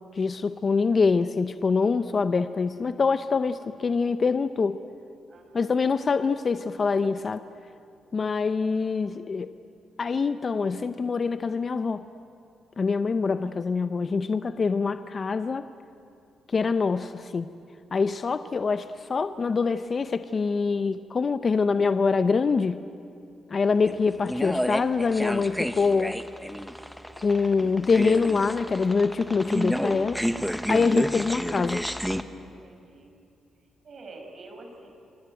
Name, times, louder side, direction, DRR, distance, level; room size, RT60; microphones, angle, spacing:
voice 1, 0.1-4.8 5.5-7.4 8.1-9.5 10.0-12.0 12.8-15.7 16.5-17.5 17.9-22.8 23.5-26.2 27.2-30.2 30.7-31.9, left 4 dB, 40° left, 11 dB, 0.7 m, -25 dB
voice 2, 5.3-5.9 32.4-33.1 33.8-34.9, right 2 dB, 50° right, 3 dB, 5.7 m, -47 dB
sound 1, 23.8-32.2, equal, ahead, 1.2 m, -30 dB
27.0 x 24.0 x 9.2 m, 2.5 s
cardioid pair, 95°, 0 cm